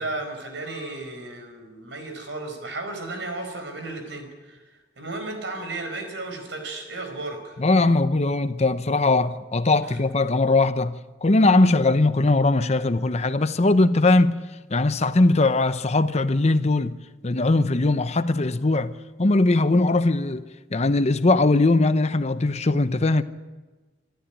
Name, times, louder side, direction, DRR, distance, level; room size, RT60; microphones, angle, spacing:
voice 1, 0.0-7.6 9.9-10.0, right 2 dB, 70° right, 5.1 m, -34 dB
voice 2, 7.6-14.4 14.7-17.0 17.2-20.4 20.7-23.2, left 2 dB, 35° left, 0.8 m, -20 dB
26.0 x 13.0 x 9.2 m
head